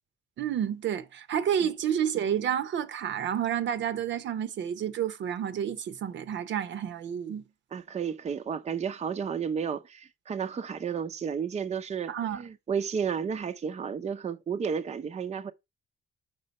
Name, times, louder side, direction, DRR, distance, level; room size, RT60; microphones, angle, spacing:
voice 1, 0.4-7.4 12.1-12.4, right 9 dB, 70° right, 0.8 m, -30 dB
voice 2, 7.7-15.5, right 6 dB, 35° right, 0.6 m, -32 dB
5.5 x 3.8 x 5.2 m
cardioid pair, 90°, 20 cm